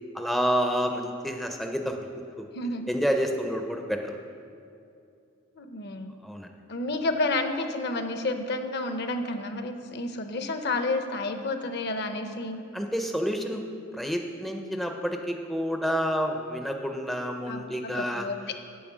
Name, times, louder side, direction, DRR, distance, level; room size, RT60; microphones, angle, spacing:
voice 1, 0.1-2.0 2.4-2.5 2.9-4.2 6.2-6.5 12.7-13.6 13.9-18.3, equal, ahead, 3 dB, 0.4 m, -29 dB
voice 2, 5.6-6.1 6.7-12.6 17.5-18.6, left 2 dB, 55° left, 7 dB, 0.7 m, -30 dB
8.3 x 7.1 x 6.0 m, 2.5 s
head